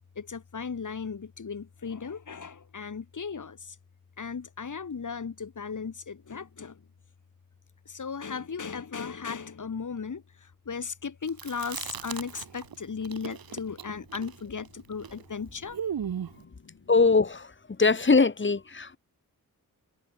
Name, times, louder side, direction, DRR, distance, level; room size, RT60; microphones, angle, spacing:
voice 1, 0.2-3.8 4.2-6.8 7.9-15.8 16.4-16.9, left 5 dB, 60° left, 6.1 m, -36 dB
Chewing mastication, 11.3-12.8 13.0-16.4, right 8 dB, 85° right, 1.4 m, -37 dB
voice 2, 16.9-17.5 17.8-19.0, left 4 dB, 35° left, 2.3 m, -21 dB
wide cardioid pair, 155°, 35 cm